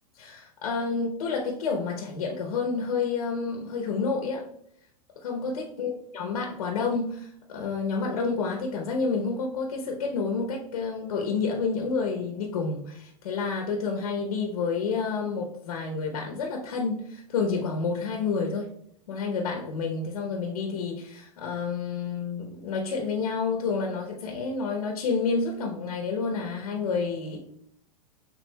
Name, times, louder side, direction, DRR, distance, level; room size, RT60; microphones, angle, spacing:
voice 1, 0.2-4.4 5.2-18.7 19.1-27.4, left 4 dB, 85° left, 1 dB, 0.9 m, -29 dB
6.2 x 3.7 x 2.3 m, 0.69 s
supercardioid pair, 150°, 18 cm